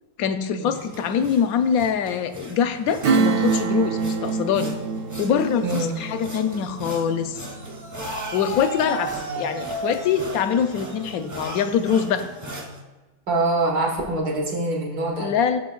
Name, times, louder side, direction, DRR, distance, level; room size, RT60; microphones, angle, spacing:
voice 1, 0.2-4.8 5.2-7.4 8.3-12.3 15.2-15.6, left 7 dB, 70° left, 9 dB, 1.0 m, -24 dB
sound 1, 0.7-12.8, right 1 dB, 20° right, 0.5 m, -36 dB
Acoustic guitar / Strum, 3.0-9.2 9.6-9.7, right 4 dB, 90° right, 0.5 m, -26 dB
voice 2, 5.6-5.9 9.3-9.4 13.3-15.3, right 2 dB, 70° right, -1 dB, 2.0 m, -24 dB
14.0 x 6.7 x 2.3 m, 1.2 s
omnidirectional pair, 1.7 m